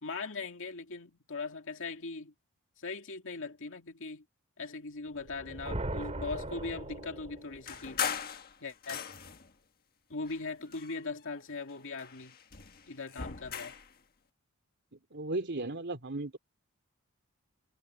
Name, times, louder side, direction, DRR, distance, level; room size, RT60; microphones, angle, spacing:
voice 1, 0.0-2.3 2.8-4.2 4.6-8.0 8.6-9.0 10.1-12.4 12.9-13.8, left 4 dB, 65° left, 2.4 m, -40 dB
sound 1, 5.2-7.8, right 1 dB, 30° right, 2.5 m, -39 dB
sound 2, 7.7-9.5 10.2-11.4 11.7-13.9, left 7 dB, 45° left, 1.5 m, -39 dB
voice 2, 14.9-16.4, right 2 dB, 55° right, 3.1 m, -36 dB
head